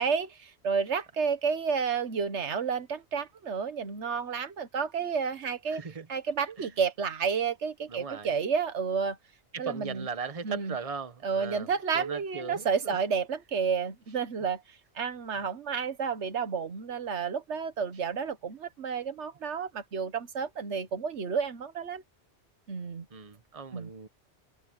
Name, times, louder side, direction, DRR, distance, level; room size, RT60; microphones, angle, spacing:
voice 1, 0.0-5.8 6.1-9.2 9.6-10.1 10.4-10.8 11.2-14.6 14.9-22.0 22.7-23.0 23.7-23.9, right 6 dB, 85° right, 1.5 m, -31 dB
voice 2, 5.7-6.1 6.6-6.7 7.9-8.3 9.5-12.9 23.1-24.1, right 5 dB, 30° right, 1.2 m, -38 dB
omnidirectional pair, 1.1 m